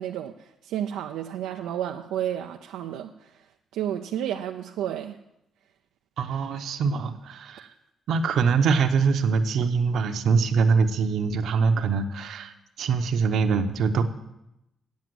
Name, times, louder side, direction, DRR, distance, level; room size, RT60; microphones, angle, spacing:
voice 1, 0.0-3.5 3.7-5.2, right 10 dB, 90° right, 4 dB, 0.5 m, -31 dB
voice 2, 6.2-7.7 8.1-14.0, right 5 dB, 70° right, 8 dB, 0.9 m, -23 dB
9.4 x 7.2 x 7.7 m, 0.87 s
cardioid pair, 90°, 0 cm